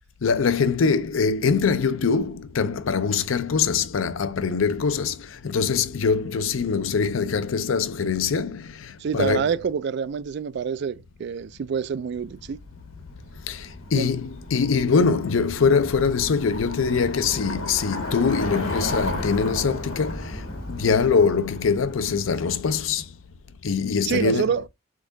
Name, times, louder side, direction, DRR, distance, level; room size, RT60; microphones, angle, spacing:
voice 1, 0.2-9.5 13.5-20.4 20.7-23.1 23.6-24.5, left 5 dB, 70° left, 0.5 m, -23 dB
voice 2, 9.0-12.6 13.9-14.1 24.0-24.7, right 6 dB, 55° right, 0.3 m, -27 dB
Bicycle, 12.1-23.0, left 1 dB, 85° left, 1.4 m, -34 dB
3.8 x 3.6 x 3.8 m
head